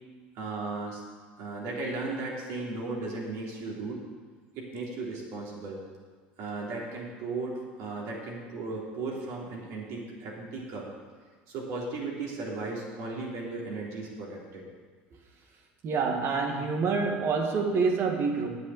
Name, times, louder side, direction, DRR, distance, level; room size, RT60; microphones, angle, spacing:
voice 1, 0.4-1.0 1.4-4.0 4.5-5.8 6.4-10.9 11.5-14.6, right 3 dB, 65° right, -3 dB, 3.7 m, -36 dB
voice 2, 15.8-18.5, right 4 dB, 50° right, 2 dB, 2.0 m, -27 dB
10.0 x 7.9 x 7.9 m, 1.5 s
hypercardioid pair, 80°, 6 cm